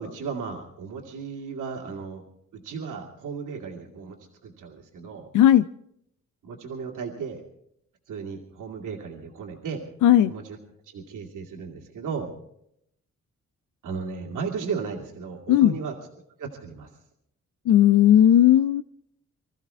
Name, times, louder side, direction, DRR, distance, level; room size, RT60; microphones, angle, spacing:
voice 1, 0.0-2.2 2.5-5.3 6.4-7.4 8.1-9.8 10.2-10.6 10.8-12.3 13.8-16.0 16.4-16.9, right 5 dB, 85° right, 2.5 m, -35 dB
voice 2, 5.3-5.7 10.0-10.3 15.5-15.8 17.7-18.8, left 11 dB, 80° left, 0.5 m, -16 dB
25.0 x 14.5 x 3.5 m
cardioid pair, 90°, 30 cm